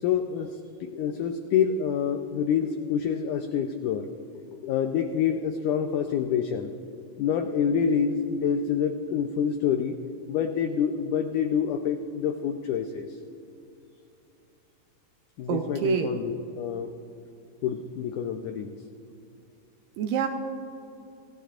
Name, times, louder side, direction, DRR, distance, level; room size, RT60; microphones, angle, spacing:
voice 1, 0.0-0.5 0.8-4.1 4.6-6.7 7.2-10.0 10.3-13.1 15.4-16.9 17.6-18.7, left 7 dB, 90° left, 5 dB, 1.7 m, -27 dB
voice 2, 15.5-16.1 20.0-20.3, right 8 dB, 75° right, 5 dB, 2.1 m, -26 dB
28.5 x 15.0 x 2.5 m, 2.7 s
omnidirectional pair, 4.4 m